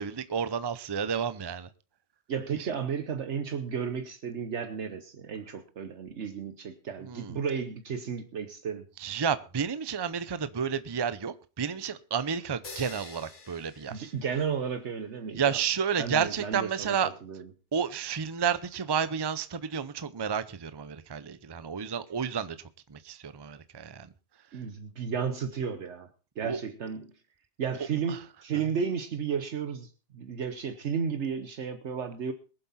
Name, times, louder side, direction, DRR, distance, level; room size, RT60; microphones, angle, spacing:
voice 1, 0.0-1.7 2.6-2.7 7.0-7.4 9.0-14.1 15.4-17.1 17.7-22.6 22.9-24.1 26.4-26.6 28.1-28.2, right 7 dB, 25° right, 14 dB, 0.6 m, -31 dB
voice 2, 2.3-8.9 13.9-15.6 16.0-17.5 24.5-26.1 26.4-27.1 27.6-32.3, right 6 dB, 70° right, 8 dB, 1.2 m, -33 dB
sound 1, 12.6-14.8, left 3 dB, 80° left, 2.1 m, -47 dB
22.0 x 7.8 x 4.2 m, 0.33 s
omnidirectional pair, 1.2 m